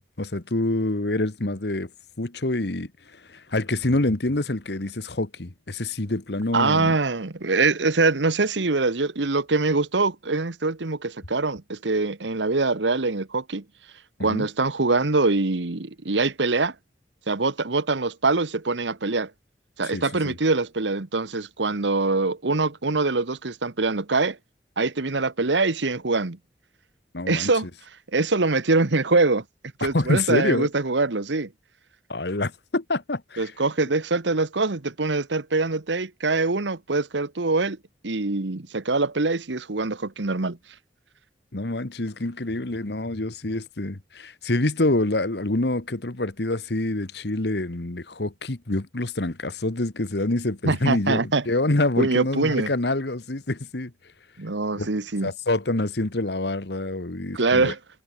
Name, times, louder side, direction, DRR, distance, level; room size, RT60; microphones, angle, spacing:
voice 1, 0.2-1.9 2.2-2.9 3.3-7.0 14.2-14.5 19.9-20.3 27.1-27.5 29.8-30.7 32.1-33.5 41.5-53.9 54.8-54.9 55.2-57.7, left 2 dB, 65° left, 1.5 m, -26 dB
voice 2, 6.5-13.6 14.2-16.7 17.3-19.3 19.8-24.4 24.8-26.4 27.3-27.7 28.1-29.4 29.8-31.5 33.4-37.8 38.0-40.6 50.6-51.4 52.0-52.7 54.4-55.3 57.3-57.8, right 3 dB, 85° right, 1.3 m, -23 dB
head